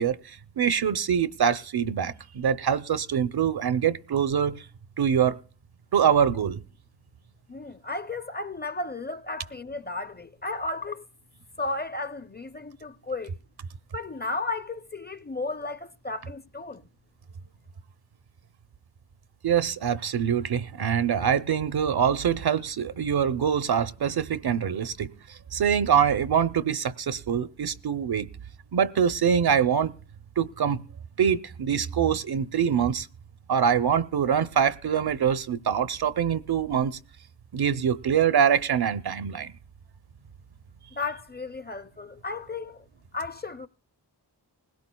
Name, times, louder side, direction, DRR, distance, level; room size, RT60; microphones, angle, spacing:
voice 1, 0.0-4.7 5.0-5.4 5.9-6.6 19.4-28.3 28.7-29.9 30.4-30.8 31.2-33.1 33.5-37.0 37.5-39.5, right 8 dB, 60° right, 0.7 m, -24 dB
voice 2, 7.5-11.1 11.6-13.4 13.9-16.9 40.9-42.9 43.1-43.7, left 3 dB, 25° left, 0.5 m, -34 dB
19.5 x 17.0 x 2.2 m
cardioid pair, 40°, 43 cm